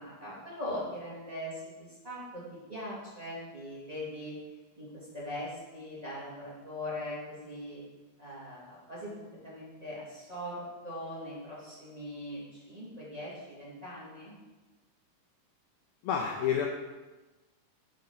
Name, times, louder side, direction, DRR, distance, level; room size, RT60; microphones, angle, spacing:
voice 1, 0.0-4.4 4.8-7.8 8.2-14.3, left 1 dB, 15° right, -8 dB, 2.3 m, -41 dB
voice 2, 16.0-16.7, left 8 dB, 75° left, 0 dB, 1.8 m, -29 dB
8.0 x 6.5 x 5.6 m, 1.2 s
omnidirectional pair, 3.8 m